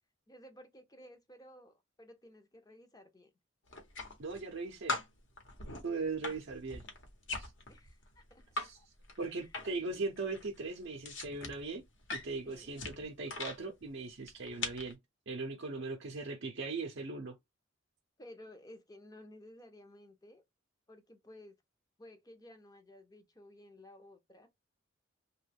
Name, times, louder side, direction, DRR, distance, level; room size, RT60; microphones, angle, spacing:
voice 1, 0.3-3.3 7.7-8.9 9.2-9.5 12.4-12.7 15.7-15.9 18.2-20.4 20.9-21.6 22.0-24.5, left 1 dB, 20° left, 0.6 m, -55 dB
sound 1, 3.7-4.6 4.9-8.7 9.0-9.9 10.2-13.6 14.2-14.9, left 3 dB, 65° left, 1.0 m, -41 dB
voice 2, 4.2-5.0 5.8-6.8 7.3-7.5 8.6-8.8 9.2-11.8 12.1-15.0 15.3-17.4, right 3 dB, 60° right, 0.5 m, -39 dB
3.0 x 2.2 x 3.3 m
head